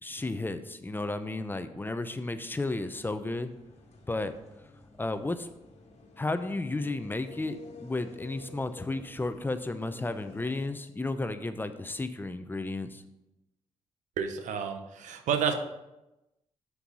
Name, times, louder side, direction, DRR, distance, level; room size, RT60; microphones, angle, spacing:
voice 1, 0.0-3.5 4.1-4.3 5.0-5.5 6.2-13.0, left 2 dB, 15° left, 10 dB, 0.7 m, -33 dB
sound 1, 2.8-10.7, left 3 dB, 60° left, 1.5 m, -51 dB
voice 2, 14.2-15.5, right 7 dB, 80° right, 6 dB, 0.8 m, -30 dB
6.8 x 4.7 x 5.4 m, 0.95 s
cardioid pair, 65°, 12 cm